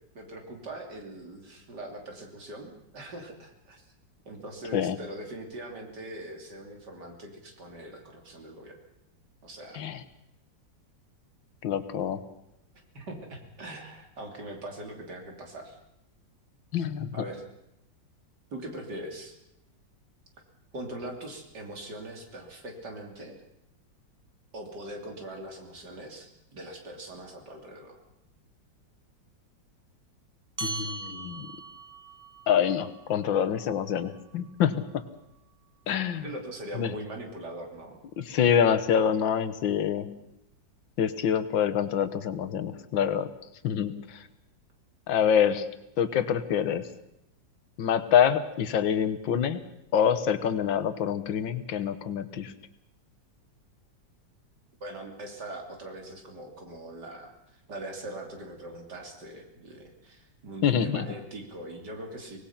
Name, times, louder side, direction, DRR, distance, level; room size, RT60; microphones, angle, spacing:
voice 1, 0.2-3.9 4.3-8.8 9.4-9.9 12.9-15.8 16.8-16.9 17.1-17.4 18.5-19.3 20.7-23.4 24.5-28.0 36.1-38.0 54.8-62.4, right 1 dB, 60° right, 3 dB, 3.6 m, -41 dB
voice 2, 11.6-12.2 16.7-17.1 30.6-31.5 32.5-35.0 35.9-36.2 36.8-36.9 38.2-40.1 41.0-43.3 43.6-44.2 45.1-45.7 46.0-46.9 47.8-49.6 49.9-52.5 60.6-61.0, left 8 dB, 85° left, 10 dB, 1.9 m, -26 dB
sound 1, 30.6-35.4, right 3 dB, 15° right, 0.7 m, -42 dB
24.5 x 19.0 x 5.8 m, 0.83 s
omnidirectional pair, 2.0 m